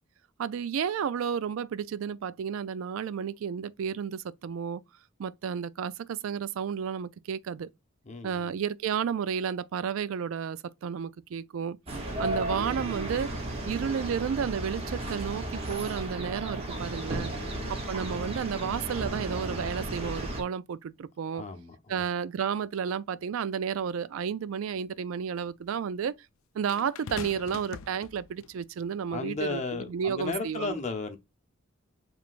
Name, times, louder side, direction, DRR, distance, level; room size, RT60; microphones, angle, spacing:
voice 1, 0.4-4.8 5.2-7.7 8.2-11.8 12.2-13.3 13.7-21.4 21.9-26.1 26.5-29.6 29.9-30.8, right 7 dB, 80° right, 0.3 m, -32 dB
voice 2, 8.0-8.6 17.3-18.1 21.3-22.0 29.1-31.2, left 3 dB, 35° left, 0.7 m, -35 dB
sound 1, 11.9-20.4, right 1 dB, 30° right, 1.0 m, -34 dB
sound 2, 23.8-23.9 26.7-28.6 29.5-29.7, left 6 dB, 85° left, 0.4 m, -43 dB
4.9 x 3.3 x 2.5 m
head